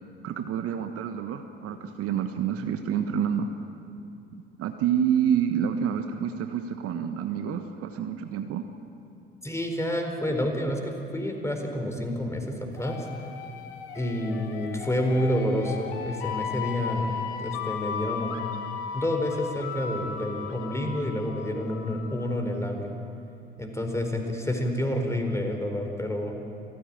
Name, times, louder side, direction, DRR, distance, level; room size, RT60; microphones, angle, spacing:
voice 1, 0.2-3.5 4.6-8.6, right 8 dB, 50° right, 7 dB, 1.4 m, -28 dB
voice 2, 9.4-13.1 13.9-17.1 17.4-18.4 18.9-22.9 23.6-26.3, left 1 dB, 10° left, 3 dB, 4.4 m, -29 dB
sound 1, 12.8-22.4, left 7 dB, 70° left, 1.7 m, -36 dB
26.0 x 15.5 x 9.0 m, 2.6 s
figure-of-eight pair, 60°, 29 cm